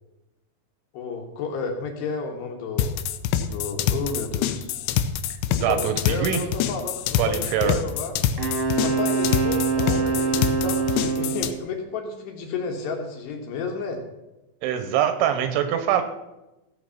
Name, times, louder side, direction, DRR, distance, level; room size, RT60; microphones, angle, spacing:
voice 1, 0.9-2.9 3.5-4.7 5.5-8.1 8.8-14.0, left 4 dB, 70° left, 2 dB, 3.0 m, -31 dB
sound 1, 2.8-11.5, left 9 dB, 85° left, 2.6 m, -25 dB
voice 2, 5.6-6.4 7.2-7.7 14.6-16.0, right 10 dB, 80° right, 9 dB, 3.0 m, -23 dB
Wind instrument woodwind instrument, 8.4-11.5, right 5 dB, 30° right, 1.3 m, -24 dB
16.0 x 7.7 x 5.7 m, 0.99 s
omnidirectional pair, 5.8 m